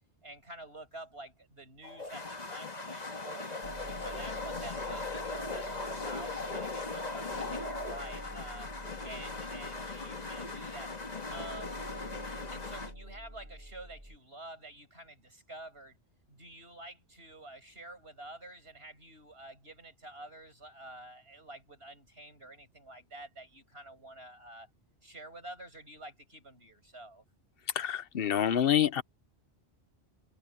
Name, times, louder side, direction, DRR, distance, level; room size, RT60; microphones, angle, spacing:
voice 1, 0.2-3.6 4.0-8.7 9.0-10.9 11.3-11.9 12.5-16.0 16.3-24.7 25.0-27.2, right 1 dB, 60° right, 7.7 m, -49 dB
sound 1, 1.8-12.9, left 3 dB, 40° left, 1.7 m, -39 dB
sound 2, 3.6-14.2, equal, 10° right, 7.3 m, -47 dB
voice 2, 27.7-29.0, left 10 dB, 60° left, 0.9 m, -27 dB
omnidirectional pair, 1.1 m